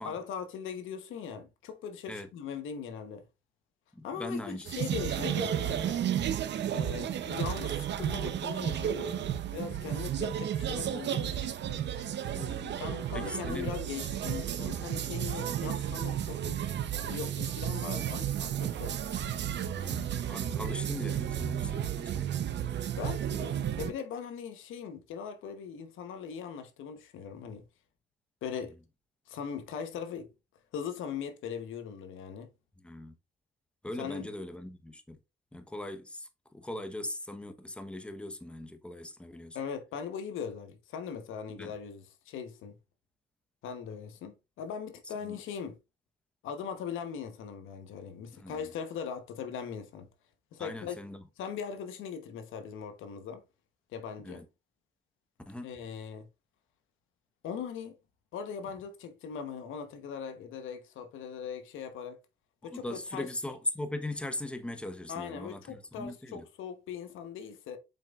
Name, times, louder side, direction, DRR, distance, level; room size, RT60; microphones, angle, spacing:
voice 1, 0.0-3.2 4.0-6.0 6.7-11.6 12.8-16.6 16.9-18.9 22.9-27.6 28.4-28.7 29.3-30.3 30.7-32.5 34.0-34.3 39.5-42.7 43.6-45.8 46.4-50.1 50.5-51.0 51.4-53.4 53.9-54.4 55.6-56.3 57.4-57.9 58.3-62.2 62.6-63.3 65.1-67.8, left 7 dB, 85° left, 1.1 m, -40 dB
voice 2, 3.9-5.1 12.3-12.8 13.1-13.7 19.7-22.3 28.6-28.7 32.8-33.1 33.8-35.2 35.5-39.6 41.6-41.7 45.0-45.4 48.3-48.7 50.6-51.2 54.2-54.4 55.5-55.7 62.7-66.4, left 1 dB, 5° left, 1.0 m, -40 dB
sound 1, 4.7-23.9, right 10 dB, 60° right, 0.8 m, -33 dB
7.4 x 5.4 x 2.4 m
cardioid pair, 90°, 20 cm